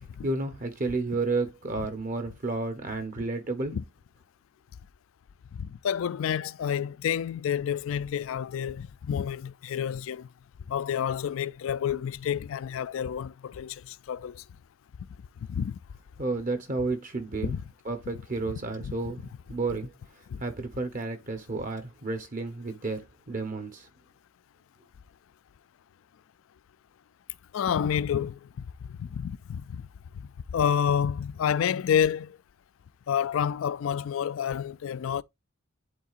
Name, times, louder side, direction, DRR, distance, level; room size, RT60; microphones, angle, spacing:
voice 1, 0.2-3.8 16.2-17.6 17.8-19.9 20.4-23.9, right 3 dB, 40° right, 0.8 m, -31 dB
voice 2, 5.5-10.3 10.7-14.4 15.5-15.8 17.4-17.6 18.8-18.9 20.3-20.4 27.5-28.4 28.9-29.9 30.5-32.4 33.1-35.2, left 8 dB, 70° left, 0.3 m, -29 dB
11.0 x 3.8 x 2.4 m
head